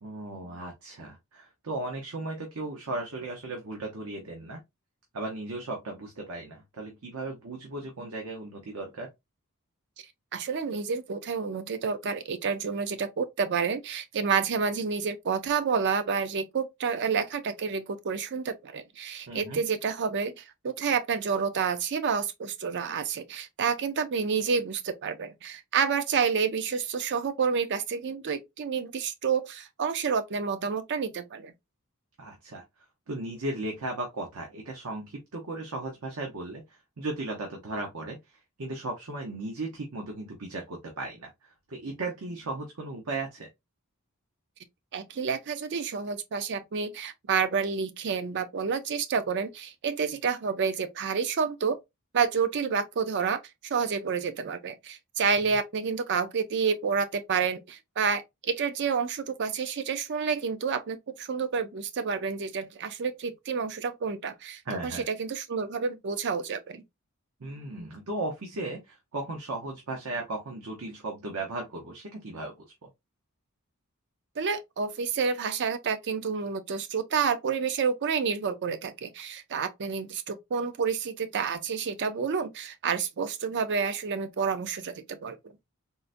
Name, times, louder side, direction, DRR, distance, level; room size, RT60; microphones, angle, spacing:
voice 1, 0.0-4.6 5.1-9.1 19.3-19.6 32.2-32.6 33.1-36.6 37.0-38.2 38.6-43.5 55.4-55.5 64.7-65.0 67.4-72.5 72.8-72.9, right 2 dB, 80° right, 0.8 m, -36 dB
voice 2, 10.3-31.5 44.9-51.8 52.1-66.8 74.4-85.4, right 6 dB, 55° right, 0.5 m, -29 dB
3.8 x 2.1 x 2.5 m
head